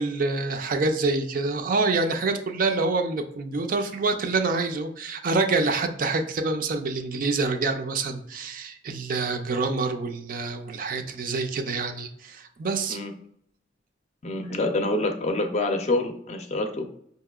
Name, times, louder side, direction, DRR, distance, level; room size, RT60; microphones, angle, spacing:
voice 1, 0.0-13.0, right 3 dB, 50° right, 6 dB, 0.4 m, -26 dB
voice 2, 14.2-16.9, left 2 dB, 35° left, 5 dB, 0.5 m, -26 dB
5.2 x 2.8 x 2.3 m, 0.68 s
head